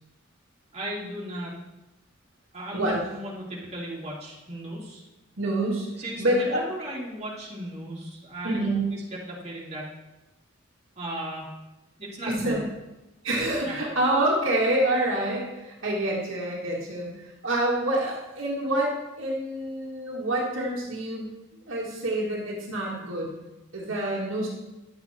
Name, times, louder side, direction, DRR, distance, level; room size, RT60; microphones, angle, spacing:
voice 1, 0.7-1.5 2.5-5.0 6.0-9.9 11.0-11.5 12.0-12.6 13.6-13.7, right 1 dB, 30° right, -6 dB, 2.8 m, -36 dB
voice 2, 5.4-5.9 6.2-6.6 8.4-8.8 12.3-12.6 13.2-21.3 21.7-23.3 23.7-24.5, right 1 dB, 65° right, -4 dB, 2.0 m, -27 dB
11.5 x 7.9 x 4.4 m, 1.0 s
head